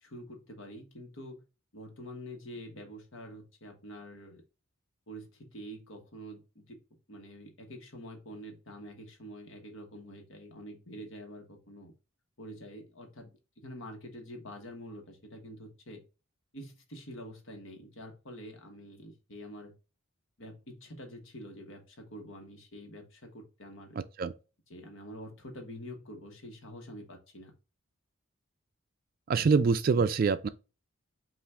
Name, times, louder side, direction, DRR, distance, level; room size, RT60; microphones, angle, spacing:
voice 1, 0.0-1.4 1.7-4.4 5.1-6.8 7.1-11.9 12.4-13.3 13.6-16.0 16.5-19.7 20.4-24.0 24.7-27.5, equal, 70° left, 1.2 m, -46 dB
voice 2, 29.3-30.5, right 5 dB, 45° right, 0.3 m, -25 dB
5.6 x 2.5 x 3.4 m
head